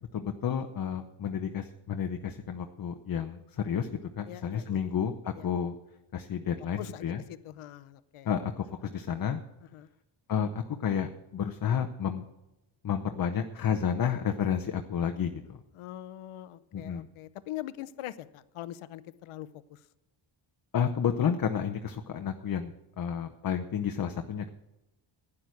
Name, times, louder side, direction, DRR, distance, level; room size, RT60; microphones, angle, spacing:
voice 1, 0.1-3.9 4.2-5.8 6.1-7.2 8.2-9.4 10.3-12.2 12.8-15.6 16.7-17.1 20.7-24.5, left 8 dB, 45° left, 6 dB, 0.8 m, -31 dB
voice 2, 4.3-5.0 5.3-5.5 6.8-8.3 9.6-9.9 15.7-19.8, left 13 dB, 85° left, 15 dB, 0.8 m, -43 dB
12.0 x 9.9 x 6.4 m, 0.95 s
cardioid pair, 120°, 49 cm